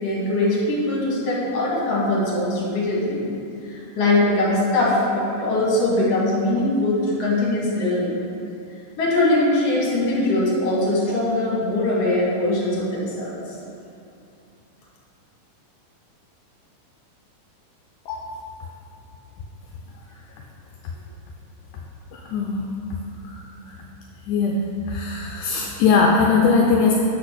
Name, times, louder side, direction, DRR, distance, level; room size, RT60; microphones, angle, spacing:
voice 1, 0.0-3.2 3.7-8.1 9.0-13.4, left 2 dB, 50° left, -5 dB, 2.3 m, -21 dB
voice 2, 18.1-18.5 22.1-22.7 23.2-23.4 24.3-24.6 24.9-26.9, left 4 dB, 80° left, -1 dB, 1.8 m, -20 dB
8.2 x 4.1 x 6.4 m, 2.5 s
omnidirectional pair, 4.1 m